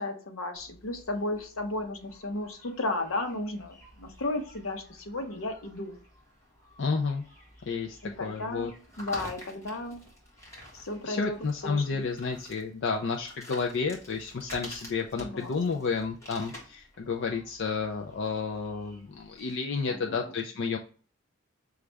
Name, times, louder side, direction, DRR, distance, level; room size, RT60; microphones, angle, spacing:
voice 1, 0.0-6.0 8.0-10.0 10.7-11.4 11.6-12.0 15.2-15.6 19.9-20.3, left 2 dB, 80° left, 5 dB, 0.8 m, -34 dB
sound 1, 0.5-19.5, equal, 15° left, 1.5 m, -50 dB
voice 2, 6.8-7.2 7.7-8.7 11.1-20.8, left 4 dB, 60° left, 2 dB, 0.4 m, -31 dB
6.2 x 2.4 x 3.3 m, 0.41 s
head